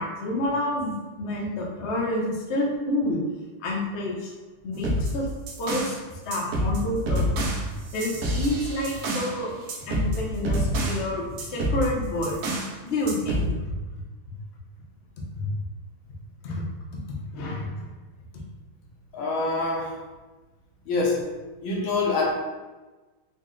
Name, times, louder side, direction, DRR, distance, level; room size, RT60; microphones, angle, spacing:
voice 1, 0.0-3.2 3.6-4.3 4.6-5.3 5.6-6.0 6.3-7.3 7.9-9.5 9.9-12.4 12.8-13.5 15.3-15.5 16.4-16.7 17.3-17.7, left 1 dB, 65° left, -3 dB, 0.6 m, -28 dB
sound 1, 4.8-6.0 6.3-9.4 9.7-11.1 11.4-12.7 13.1-13.5, right 1 dB, 70° right, 0.8 m, -28 dB
voice 2, 19.1-20.0 20.8-21.3 21.6-22.3, left 3 dB, 80° left, -2 dB, 1.5 m, -25 dB
4.0 x 2.1 x 3.7 m, 1.2 s
omnidirectional pair, 2.2 m